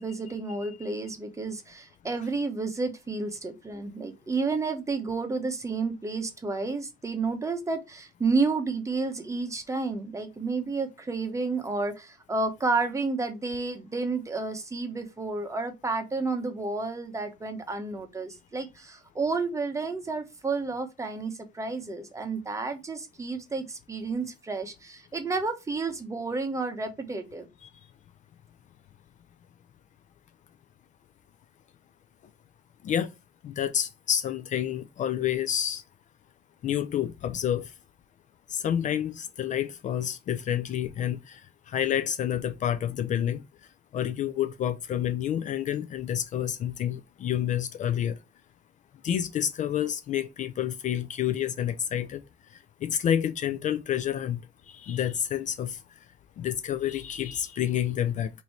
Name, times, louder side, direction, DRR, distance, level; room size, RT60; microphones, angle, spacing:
voice 1, 0.0-27.5, right 3 dB, 20° right, 0.8 m, -31 dB
voice 2, 33.4-35.8 36.6-37.7 38.5-43.4 43.9-48.2 49.0-52.2 52.5-55.8 56.4-58.3, left 10 dB, 45° left, 0.4 m, -29 dB
3.0 x 2.7 x 4.3 m
cardioid pair, 110°, 17 cm